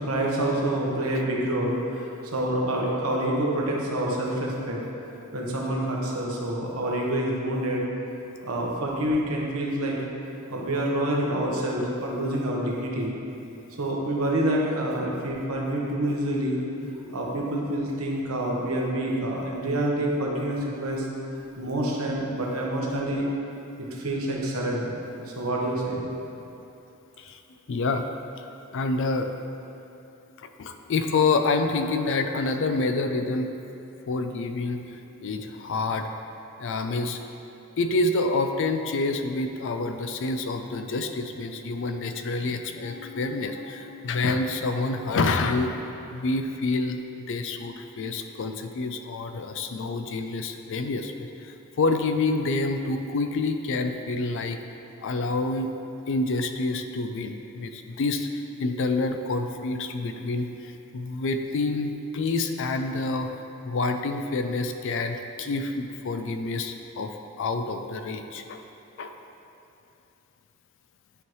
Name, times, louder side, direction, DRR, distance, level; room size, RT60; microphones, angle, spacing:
voice 1, 0.0-4.8 5.3-7.8 8.4-9.9 10.5-13.1 13.8-16.6 17.1-21.1 21.6-23.3 23.8-25.0 25.4-26.0, right 1 dB, 75° right, -2 dB, 1.1 m, -27 dB
voice 2, 27.7-28.0 28.4-28.5 28.7-29.3 30.4-33.5 34.1-36.1 36.6-37.2 37.8-45.7 46.1-47.0 47.3-54.6 55.0-55.7 56.1-58.3 58.6-63.3 63.6-68.6 69.0-69.1, left 3 dB, 60° left, 7 dB, 0.4 m, -27 dB
10.0 x 4.7 x 3.1 m, 2.8 s
head